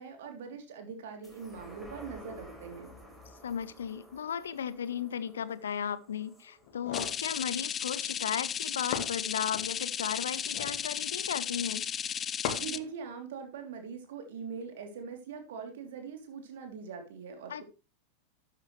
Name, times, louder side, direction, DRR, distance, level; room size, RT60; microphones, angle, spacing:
voice 1, 0.0-2.9 12.5-17.6, right 6 dB, 55° right, 5 dB, 3.0 m, -42 dB
sound 1, 1.2-8.0 8.4-8.5, equal, ahead, 3.8 m, -52 dB
voice 2, 3.4-11.8 17.5-17.6, left 8 dB, 65° left, 17 dB, 0.8 m, -35 dB
sound 2, 6.6-7.2 8.5-8.6 8.9-9.7 10.4-10.8 12.4-12.9, left 8 dB, 45° left, 2.1 m, -37 dB
sound 3, 6.9-12.8, left 8 dB, 25° left, 0.5 m, -35 dB
12.5 x 8.5 x 3.2 m, 0.29 s
figure-of-eight pair, 90°, 0 cm